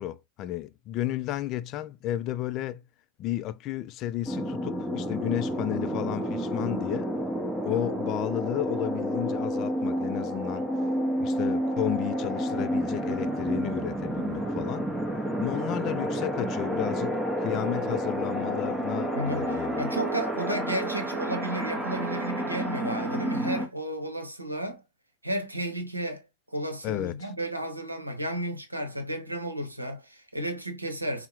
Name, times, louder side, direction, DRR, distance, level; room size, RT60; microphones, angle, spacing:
voice 1, 0.0-2.8 3.2-7.1 7.6-10.7 11.2-14.9 15.3-19.9 26.8-27.3, left 13 dB, 35° left, 0.3 m, -32 dB
sound 1, 4.3-23.7, equal, 5° right, 0.6 m, -30 dB
voice 2, 19.1-24.8 25.2-26.2 26.5-31.3, right 1 dB, 85° right, 0.8 m, -33 dB
4.5 x 2.1 x 2.8 m
figure-of-eight pair, 90°, 0 cm